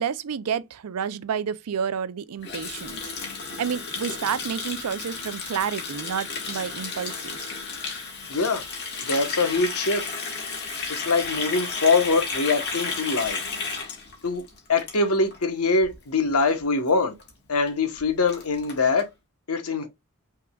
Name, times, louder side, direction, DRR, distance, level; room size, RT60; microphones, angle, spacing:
voice 1, 0.0-3.0 3.6-7.4, right 7 dB, 85° right, 0.5 m, -30 dB
Water tap faucet, 2.4-15.4 15.7-16.0 16.3-16.6 16.9-17.0 17.2-17.3 17.7-17.8 18.0-19.0, left 4 dB, 50° left, 1.7 m, -33 dB
voice 2, 8.3-8.6 9.1-10.0 10.9-13.4 14.2-14.4 14.7-17.1 17.5-19.1 19.5-19.9, left 3 dB, 80° left, 1.1 m, -23 dB
5.8 x 3.7 x 2.3 m
head